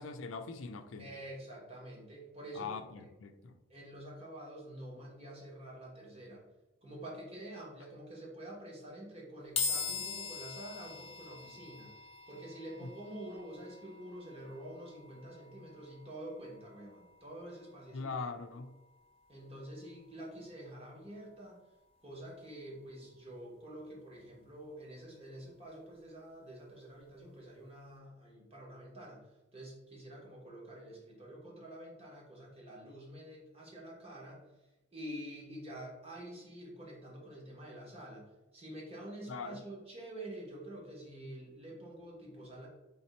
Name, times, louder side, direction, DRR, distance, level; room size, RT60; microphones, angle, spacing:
voice 1, 0.0-1.1 2.5-3.6 12.8-12.9 17.9-18.7 39.3-39.6, left 4 dB, 85° left, 8 dB, 0.4 m, -42 dB
voice 2, 1.0-2.8 3.7-6.4 6.8-11.9 12.3-18.1 19.3-21.6 22.0-29.2 29.5-34.4 34.9-38.3 38.5-42.7, right 1 dB, 30° right, -3 dB, 1.2 m, -47 dB
sound 1, 9.6-22.9, left 5 dB, 30° left, 0.6 m, -44 dB
3.6 x 2.8 x 4.2 m, 1.1 s
head